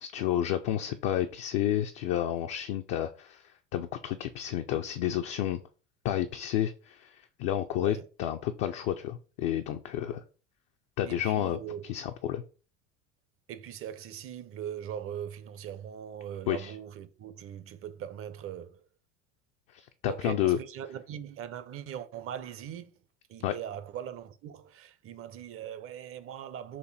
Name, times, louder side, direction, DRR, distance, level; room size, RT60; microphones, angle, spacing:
voice 1, 0.0-3.4 3.7-5.6 6.0-7.1 7.4-10.2 11.0-11.6 11.9-12.4 16.5-16.7 19.7-20.6 23.4-23.5, left 11 dB, 55° left, 0.6 m, -30 dB
voice 2, 7.7-8.1 11.1-11.9 13.5-18.8 20.1-22.9 23.3-26.8, right 9 dB, 40° right, 0.6 m, -40 dB
4.4 x 2.7 x 4.0 m
hypercardioid pair, 75°, 36 cm